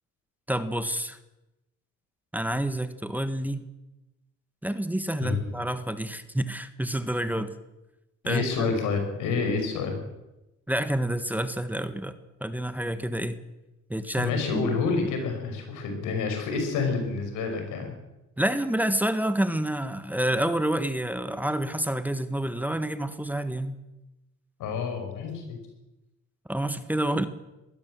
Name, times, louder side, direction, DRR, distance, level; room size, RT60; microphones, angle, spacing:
voice 1, 0.5-1.2 2.3-3.7 4.6-7.5 8.2-8.7 10.7-13.4 13.9-14.8 18.4-23.8 26.5-27.3, right 1 dB, 5° right, 10 dB, 1.5 m, -28 dB
voice 2, 8.2-10.0 14.2-18.0 24.6-25.6, left 4 dB, 90° left, 5 dB, 5.6 m, -28 dB
21.5 x 16.5 x 7.7 m, 0.96 s
cardioid pair, 90°, 30 cm